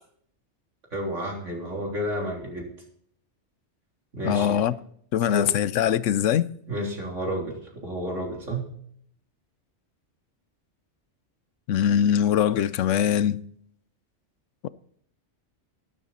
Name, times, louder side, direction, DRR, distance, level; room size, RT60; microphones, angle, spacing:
voice 1, 0.9-2.7 4.1-4.6 5.2-5.5 6.7-8.7, equal, 85° right, 4.0 m, -31 dB
voice 2, 4.2-4.7 5.1-6.5 11.7-13.4 14.6-14.7, left 9 dB, 80° left, 1.0 m, -22 dB
12.0 x 12.0 x 4.2 m
omnidirectional pair, 1.3 m